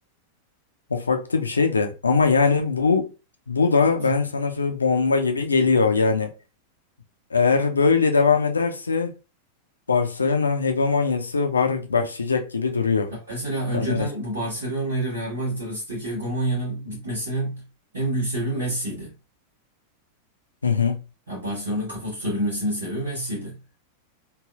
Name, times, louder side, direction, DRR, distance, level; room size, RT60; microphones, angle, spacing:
voice 1, 0.9-3.1 3.5-6.3 7.3-9.1 9.9-13.1 13.7-14.1 20.6-21.0, left 4 dB, 75° left, 0.5 m, -21 dB
voice 2, 3.8-4.2 13.1-17.6 17.9-19.1 21.3-23.6, right 1 dB, 70° right, 1.3 m, -28 dB
3.3 x 2.6 x 2.4 m
figure-of-eight pair, 90°, 0 cm